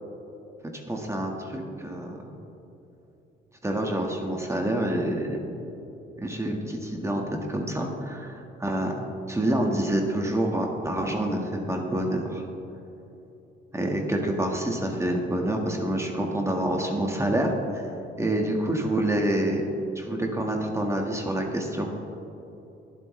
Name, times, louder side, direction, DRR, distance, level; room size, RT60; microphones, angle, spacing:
voice 1, 0.9-2.2 3.6-5.4 6.2-12.4 13.7-17.8 18.2-19.6 19.9-21.9, right 1 dB, 15° right, 1 dB, 1.5 m, -27 dB
23.0 x 7.9 x 3.2 m, 3.0 s
cardioid pair, 90°, 20 cm